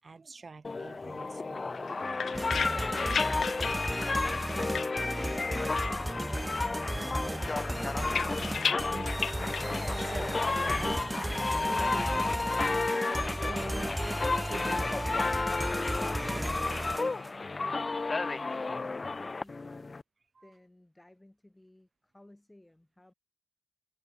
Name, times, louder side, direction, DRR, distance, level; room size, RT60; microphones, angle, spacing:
voice 1, 0.0-1.9 8.6-9.3 10.0-16.0 20.3-20.5, right 4 dB, 40° right, 7.3 m, -46 dB
sound 1, 0.6-20.0, left 3 dB, 35° left, 0.6 m, -32 dB
sound 2, 1.7-5.5 5.8-6.6 6.9-10.2, left 6 dB, 65° left, 1.0 m, -36 dB
sound 3, 2.3-17.4, right 1 dB, 10° right, 0.3 m, -35 dB
voice 2, 17.3-20.0 20.4-23.1, left 1 dB, 10° left, 7.9 m, -58 dB
cardioid pair, 75°, 0 cm